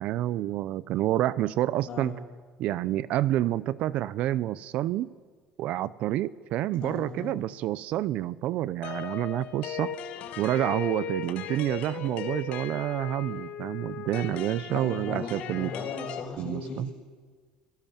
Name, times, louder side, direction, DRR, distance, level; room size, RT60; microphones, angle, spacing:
voice 1, 0.0-2.1 2.6-5.1 5.6-10.0 10.4-15.7 16.4-16.9, right 13 dB, 55° right, 19 dB, 0.6 m, -28 dB
voice 2, 6.6-7.3 14.7-16.9, left 4 dB, 40° left, 1 dB, 6.8 m, -37 dB
sound 1, 8.8-16.2, left 8 dB, 55° left, 1.9 m, -37 dB
25.5 x 17.5 x 7.3 m, 1.5 s
cardioid pair, 150°, 3 cm